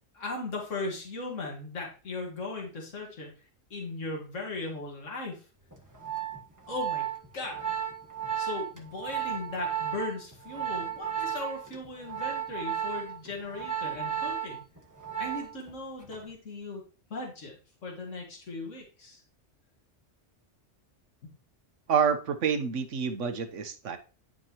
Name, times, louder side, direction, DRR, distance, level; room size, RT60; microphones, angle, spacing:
voice 1, 0.1-3.3 3.7-5.4 6.7-7.1 7.3-7.6 8.4-14.6 15.2-16.8 17.1-17.6 17.8-19.2, left 3 dB, 85° left, 0 dB, 2.2 m, -37 dB
Organ, 5.7-15.7 16.0-16.3, right 9 dB, 15° right, 1.3 m, -34 dB
voice 2, 21.9-24.0, right 7 dB, 80° right, 8 dB, 1.3 m, -28 dB
11.5 x 5.3 x 3.0 m, 0.36 s
omnidirectional pair, 1.3 m